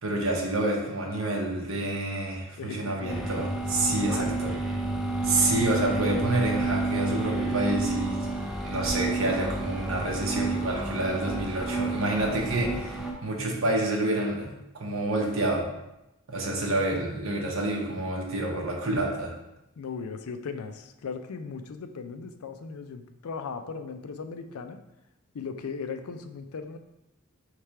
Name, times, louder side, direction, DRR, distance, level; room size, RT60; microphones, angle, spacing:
voice 1, 0.0-4.6 5.2-8.3 8.6-15.7 16.3-19.3, right 2 dB, 65° right, -1 dB, 0.9 m, -28 dB
voice 2, 2.6-3.3 3.9-4.4 19.8-24.8 25.3-26.8, left 5 dB, 85° left, 8 dB, 0.4 m, -37 dB
sound 1, 3.1-13.1, right 2 dB, ahead, 0.4 m, -30 dB
3.3 x 3.2 x 4.5 m, 0.90 s
head